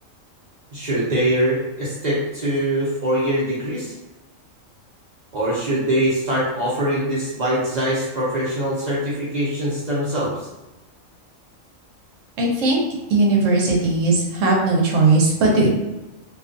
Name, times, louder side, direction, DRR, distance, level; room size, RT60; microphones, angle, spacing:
voice 1, 0.7-3.9 5.3-10.5, right 1 dB, 45° right, -7 dB, 0.6 m, -23 dB
voice 2, 12.4-12.8 13.1-15.7, right 3 dB, 75° right, -1 dB, 1.0 m, -18 dB
2.5 x 2.3 x 2.4 m, 1.1 s
omnidirectional pair, 1.3 m